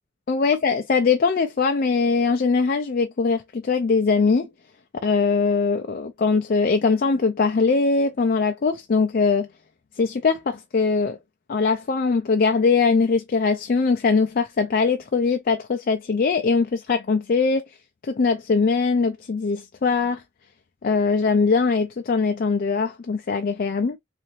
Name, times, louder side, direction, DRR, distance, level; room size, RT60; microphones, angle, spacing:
voice 1, 0.3-4.5 5.0-9.5 10.0-11.2 11.5-17.6 18.0-20.2 20.8-24.0, left 4 dB, 45° left, 0.4 m, -21 dB
3.7 x 2.6 x 3.0 m
head